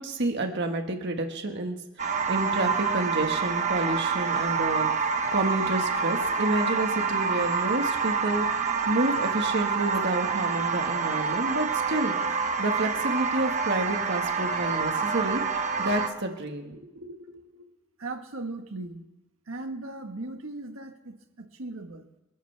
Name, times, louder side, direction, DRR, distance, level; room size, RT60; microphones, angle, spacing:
voice 1, 0.0-4.9 5.3-12.1 12.6-17.4, right 2 dB, 55° right, 4 dB, 1.7 m, -29 dB
sound 1, 2.0-16.1, right 5 dB, 35° right, 1.2 m, -27 dB
voice 2, 18.0-19.1 19.5-22.1, right 2 dB, 80° right, 6 dB, 1.5 m, -38 dB
29.5 x 13.0 x 3.4 m, 0.95 s
head